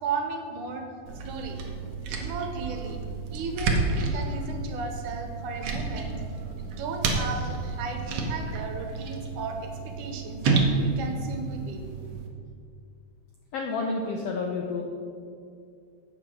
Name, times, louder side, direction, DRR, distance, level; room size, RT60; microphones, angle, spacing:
voice 1, 0.0-0.9 1.2-1.6 2.1-3.0 3.3-6.2 6.6-11.9, right 4 dB, 80° right, 4 dB, 2.4 m, -35 dB
sound 1, 1.1-12.3, right 3 dB, 65° right, 1.7 m, -30 dB
voice 2, 13.5-14.9, left 3 dB, 80° left, 1 dB, 1.3 m, -30 dB
8.3 x 6.6 x 6.1 m, 2.4 s
omnidirectional pair, 3.6 m